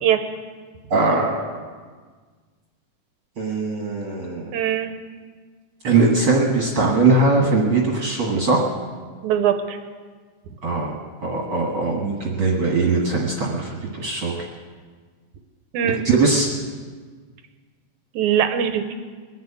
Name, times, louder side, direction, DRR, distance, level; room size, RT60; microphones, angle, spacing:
voice 1, 0.9-1.4 3.4-4.5 5.8-8.6 10.6-10.9 11.2-14.5 15.8-16.5, right 3 dB, 45° right, -1 dB, 2.0 m, -20 dB
voice 2, 4.5-4.9 9.2-9.8 15.7-16.0 18.1-18.9, right 9 dB, 70° right, 8 dB, 2.1 m, -21 dB
22.0 x 7.5 x 8.5 m, 1.5 s
omnidirectional pair, 3.8 m